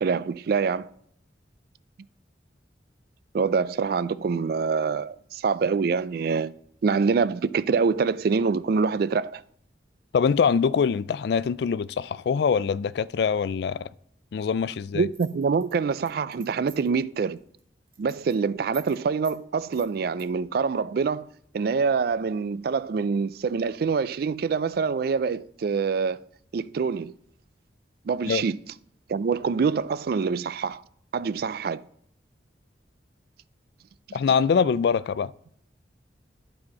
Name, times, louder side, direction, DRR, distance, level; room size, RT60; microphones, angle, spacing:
voice 1, 0.0-0.9 3.3-6.5 6.8-9.4 14.9-17.4 18.0-21.3 21.5-26.2 26.5-27.1 28.1-28.6 29.1-30.8 31.1-31.8, right 5 dB, 55° right, 0.3 m, -25 dB
voice 2, 10.1-13.9 14.3-15.1 28.3-28.4 34.1-35.3, left 6 dB, 65° left, 0.3 m, -24 dB
sound 1, 15.1-17.0 17.4-17.6 17.9-18.4 18.7-19.0 19.2-19.4 19.7-20.3, right 7 dB, 30° right, 1.4 m, -48 dB
11.5 x 4.2 x 4.7 m
head